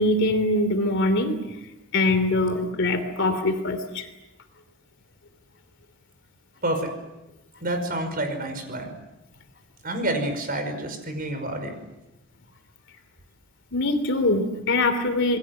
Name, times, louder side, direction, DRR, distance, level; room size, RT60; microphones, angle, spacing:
voice 1, 0.0-1.4 1.9-4.1 13.7-15.4, left 2 dB, 55° left, 9 dB, 3.2 m, -23 dB
voice 2, 6.6-6.9 7.6-8.9 9.8-11.7, right 1 dB, 40° right, 7 dB, 5.5 m, -28 dB
28.5 x 21.0 x 7.9 m, 0.98 s
head